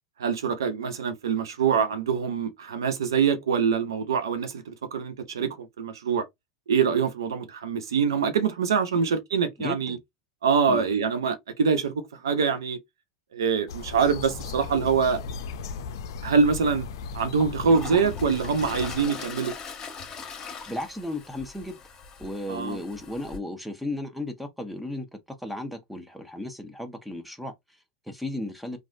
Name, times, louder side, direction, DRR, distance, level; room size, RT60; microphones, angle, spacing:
voice 1, 0.2-6.2 6.7-10.0 10.4-11.9 12.2-12.8 13.3-15.2 16.2-16.9 17.1-19.5 22.5-22.8, right 6 dB, 85° right, 0.7 m, -24 dB
voice 2, 9.6-10.0 10.7-10.9 20.4-21.8 22.2-28.8, left 1 dB, ahead, 0.9 m, -35 dB
sound 1, 13.7-19.1, left 5 dB, 75° left, 0.5 m, -36 dB
Toilet flush, 16.6-16.7 17.2-23.4, left 5 dB, 30° left, 1.3 m, -41 dB
3.2 x 2.5 x 2.5 m
hypercardioid pair, 95°, 2 cm